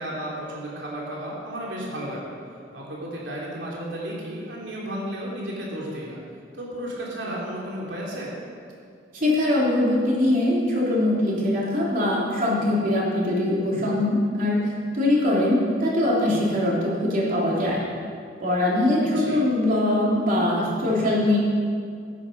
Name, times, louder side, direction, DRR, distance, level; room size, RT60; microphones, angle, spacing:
voice 1, 0.0-2.3 2.7-6.2 6.5-8.3 19.1-19.4, right 1 dB, 85° right, -4 dB, 3.1 m, -33 dB
voice 2, 9.1-14.7 14.9-17.8 18.4-21.4, left 1 dB, 50° right, -5 dB, 3.3 m, -22 dB
12.5 x 10.0 x 5.3 m, 2.2 s
head